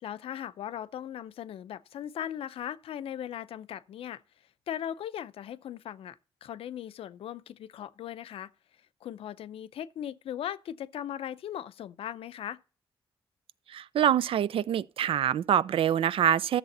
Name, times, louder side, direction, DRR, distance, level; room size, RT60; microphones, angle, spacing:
voice 1, 0.0-4.2 4.7-6.2 6.4-8.5 9.0-12.6, left 10 dB, 80° left, 0.6 m, -38 dB
voice 2, 13.7-16.6, right 9 dB, 70° right, 0.4 m, -25 dB
13.0 x 6.8 x 4.2 m
cardioid pair, 85°, 10 cm